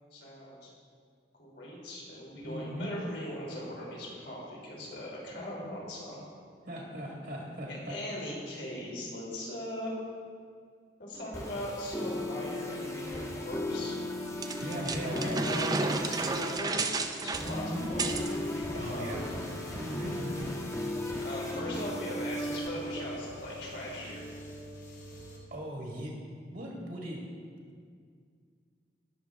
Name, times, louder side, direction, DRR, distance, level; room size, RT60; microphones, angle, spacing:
voice 1, 0.1-0.7 1.3-6.2 7.7-10.0 11.0-14.0 14.8-19.1 21.2-24.3, left 1 dB, 70° left, -4 dB, 3.2 m, -39 dB
voice 2, 2.3-2.9 6.6-7.9 14.6-15.4 17.4-17.9 18.7-19.2 19.5-20.5 25.5-26.1 26.5-27.2, equal, 60° right, -2 dB, 1.6 m, -38 dB
sound 1, 11.1-23.9, left 1 dB, 15° left, 1.1 m, -38 dB
sound 2, 14.4-18.3, right 3 dB, 20° right, 0.5 m, -32 dB
sound 3, 18.0-25.4, equal, 45° left, 1.7 m, -42 dB
18.5 x 6.5 x 3.6 m, 2.1 s
head